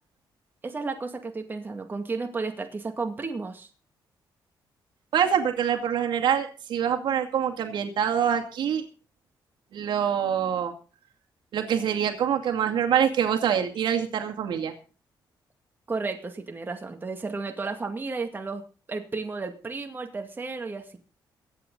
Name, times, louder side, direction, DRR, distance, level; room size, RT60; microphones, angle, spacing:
voice 1, 0.6-3.7 15.9-18.6 18.9-21.0, right 3 dB, 25° right, 5 dB, 2.1 m, -33 dB
voice 2, 5.1-8.9 9.7-10.7 11.5-14.7, right 8 dB, 75° right, 4 dB, 2.3 m, -25 dB
23.0 x 9.1 x 3.9 m, 0.36 s
cardioid pair, 120°, 8 cm